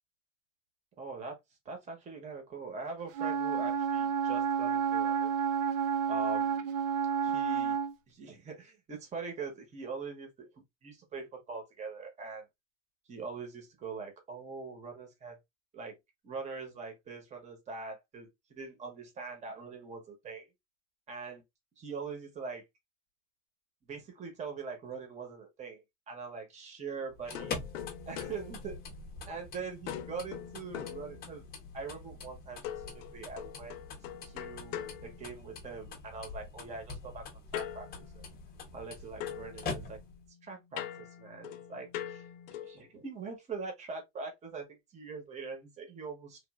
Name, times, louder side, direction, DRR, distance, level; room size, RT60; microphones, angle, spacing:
voice 1, 1.0-1.3 1.6-5.4 6.1-6.7 7.2-7.8 8.1-12.4 13.1-15.4 15.7-16.0 16.2-20.5 21.1-21.4 21.8-22.6 23.9-27.6 28.1-28.8 29.3-31.4 31.7-33.8 34.3-37.2 37.5-37.9 38.1-38.2 38.7-40.0 40.4-42.3 42.6-46.4, right 4 dB, 20° right, 0.9 m, -42 dB
Wind instrument woodwind instrument, 3.1-7.9, right 7 dB, 80° right, 0.6 m, -30 dB
sound 1, 27.1-40.3, left 4 dB, 25° left, 0.8 m, -45 dB
sound 2, 27.3-29.4 29.9-31.7 32.6-35.9 37.5-38.9 39.2-42.9, left 11 dB, 75° left, 0.7 m, -43 dB
3.1 x 2.3 x 2.3 m
supercardioid pair, 145°, 39 cm